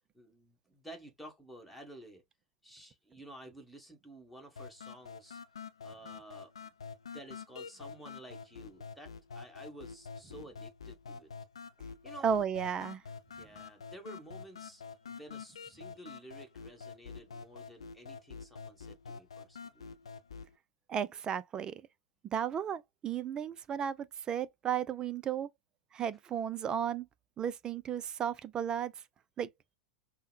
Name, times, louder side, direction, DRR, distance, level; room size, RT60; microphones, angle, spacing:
voice 1, 0.1-2.2 2.6-5.4 5.8-6.7 7.1-11.3 12.0-12.3 13.3-19.9, right 1 dB, ahead, 1.5 m, -52 dB
sound 1, 4.6-20.6, left 5 dB, 75° left, 0.5 m, -47 dB
voice 2, 12.2-13.0 20.9-21.8 22.3-25.5 25.9-27.1 27.4-28.9 29.4-29.5, right 8 dB, 25° right, 0.4 m, -34 dB
5.5 x 2.1 x 2.4 m
figure-of-eight pair, 95°, 3 cm